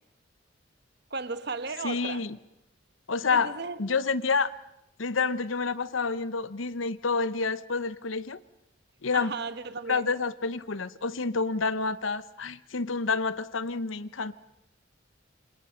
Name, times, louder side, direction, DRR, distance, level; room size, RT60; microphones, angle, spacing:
voice 1, 1.1-2.3 3.3-3.8 9.1-10.1, right 4 dB, 55° right, 1.3 m, -35 dB
voice 2, 1.8-2.4 3.1-3.5 3.8-4.5 5.0-8.4 9.0-9.4 9.9-14.3, left 4 dB, 85° left, 0.9 m, -28 dB
27.0 x 27.0 x 5.8 m
head